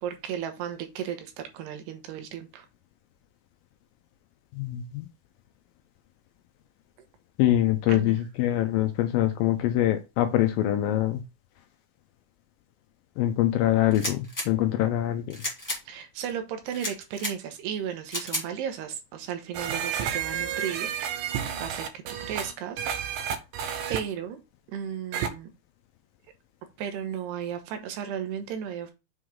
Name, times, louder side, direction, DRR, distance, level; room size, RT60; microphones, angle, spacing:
voice 1, 0.0-2.7 7.9-8.2 15.9-20.9 21.6-21.8 22.3-23.1 23.9-24.4 24.7-25.5 26.8-28.9, right 9 dB, 90° right, 3.2 m, -34 dB
voice 2, 4.6-5.1 7.4-11.2 13.2-14.2 14.5-15.4, left 13 dB, 80° left, 2.1 m, -24 dB
sound 1, 13.9-14.5 15.3-15.8 16.7-17.3 18.1-18.4, left 1 dB, 10° left, 0.7 m, -32 dB
sound 2, 19.5-24.0 25.1-25.3, right 8 dB, 75° right, 2.2 m, -31 dB
7.0 x 4.8 x 3.7 m
omnidirectional pair, 4.6 m